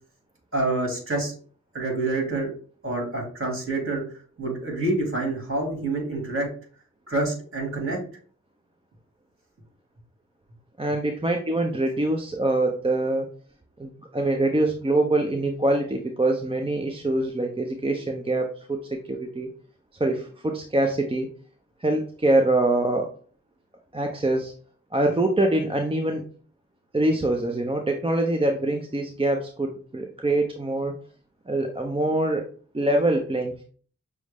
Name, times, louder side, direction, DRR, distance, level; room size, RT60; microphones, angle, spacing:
voice 1, 0.5-1.4 1.7-2.5 2.8-4.0 4.4-6.5 7.1-8.0, right 2 dB, 40° right, 0 dB, 2.2 m, -27 dB
voice 2, 10.8-13.3 13.8-19.5 20.0-21.3 21.8-23.1 23.9-24.5 24.9-26.2 26.9-30.9 31.5-32.4 32.7-33.6, right 2 dB, 15° right, 3 dB, 0.6 m, -24 dB
6.1 x 2.1 x 3.5 m, 0.44 s
cardioid pair, 45°, 32 cm